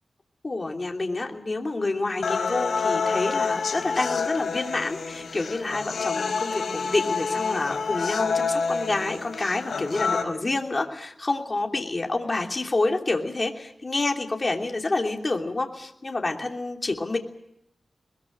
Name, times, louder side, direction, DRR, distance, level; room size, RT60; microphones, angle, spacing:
voice 1, 0.4-17.2, left 2 dB, 30° left, 2 dB, 3.1 m, -28 dB
sound 1, 2.2-10.2, left 5 dB, 80° left, 3.9 m, -28 dB
21.5 x 21.0 x 7.5 m, 0.80 s
wide cardioid pair, 115°, 0 cm